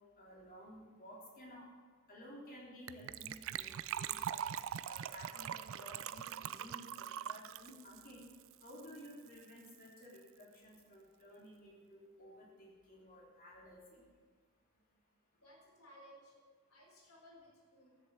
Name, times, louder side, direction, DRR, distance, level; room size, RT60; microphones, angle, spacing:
voice 1, 0.2-1.6 2.1-3.7 4.0-4.4 4.8-8.3 8.6-14.0, equal, 40° left, -4 dB, 3.5 m, -54 dB
Gurgling / Trickle dribble / Fill (with liquid), 2.9-9.1 9.4-9.5 9.6-9.9 10.2-10.3, right 9 dB, 60° right, 0.4 m, -42 dB
voice 2, 15.4-16.3 16.7-18.0, equal, 65° left, -1 dB, 3.9 m, -60 dB
14.0 x 7.3 x 7.6 m, 1.6 s
head